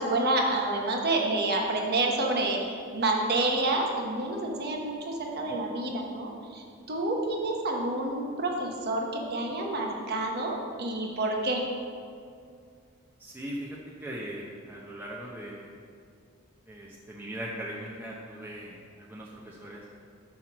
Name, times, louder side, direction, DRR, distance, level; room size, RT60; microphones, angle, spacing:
voice 1, 0.0-11.6, right 2 dB, 50° right, 0 dB, 1.1 m, -28 dB
voice 2, 13.2-15.8 16.7-19.9, right 1 dB, 10° right, -5 dB, 0.8 m, -40 dB
6.2 x 5.9 x 7.3 m, 2.3 s
head